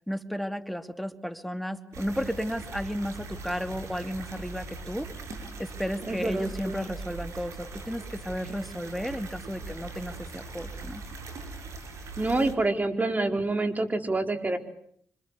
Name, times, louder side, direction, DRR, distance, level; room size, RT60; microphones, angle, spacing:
voice 1, 0.1-5.1 5.6-11.0, equal, ahead, 10 dB, 2.6 m, -33 dB
sound 1, 1.9-12.5, right 3 dB, 75° right, 7.4 m, -41 dB
voice 2, 6.0-6.8 12.2-14.6, right 2 dB, 30° right, 8 dB, 4.6 m, -27 dB
27.5 x 25.5 x 8.3 m, 0.65 s
supercardioid pair, 50°, 5 cm